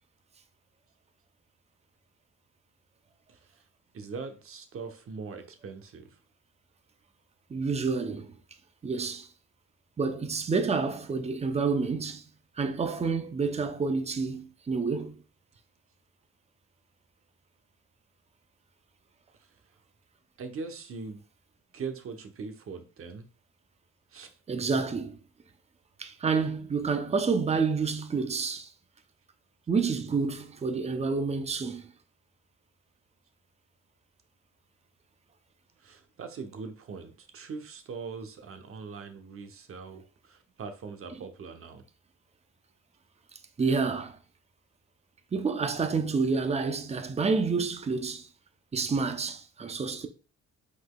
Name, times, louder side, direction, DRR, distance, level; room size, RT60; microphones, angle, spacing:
voice 1, 3.9-6.1 20.4-21.2 21.7-23.3 24.1-24.3 35.8-41.8, right 5 dB, 45° right, 0.8 m, -41 dB
voice 2, 7.5-8.3 8.8-9.3 10.0-12.2 12.6-15.2 24.5-25.2 26.0-28.7 29.7-31.9 43.6-44.2 45.3-48.3 48.7-50.1, right 4 dB, 20° right, 0.6 m, -29 dB
5.1 x 4.0 x 2.3 m
cardioid pair, 90°, 30 cm